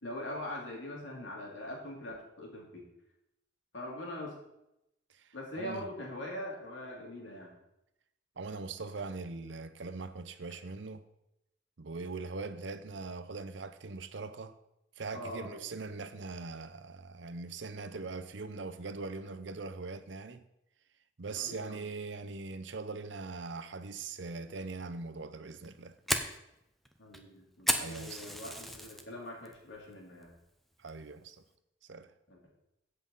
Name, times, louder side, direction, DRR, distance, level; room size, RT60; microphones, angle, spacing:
voice 1, 0.0-2.9 3.7-4.4 5.3-7.5 15.1-15.7 21.3-21.9 27.0-30.3 32.3-32.4, left 1 dB, 80° left, 3.0 m, -42 dB
voice 2, 5.6-5.9 8.4-11.0 11.8-14.6 15.0-20.4 21.2-26.0 27.8-28.4 30.8-31.4 31.9-32.1, right 4 dB, 70° right, 0.7 m, -41 dB
Fire, 25.5-29.1 29.5-29.8 30.2-30.4 30.9-31.2, equal, ahead, 0.7 m, -34 dB
15.5 x 5.6 x 4.1 m
head